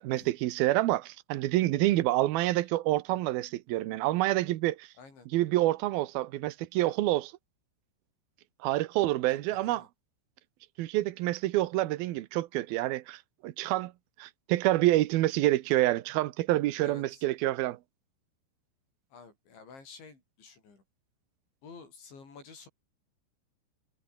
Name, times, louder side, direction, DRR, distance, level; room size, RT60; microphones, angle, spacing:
voice 1, 0.0-4.9 5.3-7.3 8.6-9.9 10.8-13.9 14.2-17.8, right 16 dB, 75° right, 2.2 m, -27 dB
voice 2, 5.0-5.3 9.3-9.9 16.8-17.2 19.1-20.8 21.6-22.7, left 5 dB, 65° left, 9.6 m, -51 dB
omnidirectional pair, 5.6 m